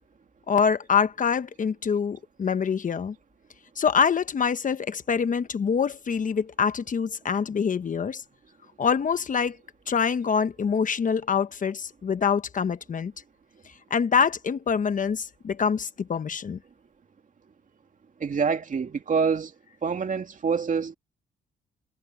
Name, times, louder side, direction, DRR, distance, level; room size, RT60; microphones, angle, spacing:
voice 1, 0.5-3.1 3.8-8.2 8.8-9.6 9.9-13.1 13.9-16.6, left 6 dB, 40° left, 1.1 m, -25 dB
voice 2, 18.2-19.5 19.8-20.9, right 5 dB, 40° right, 2.4 m, -26 dB
cardioid pair, 90°, 20 cm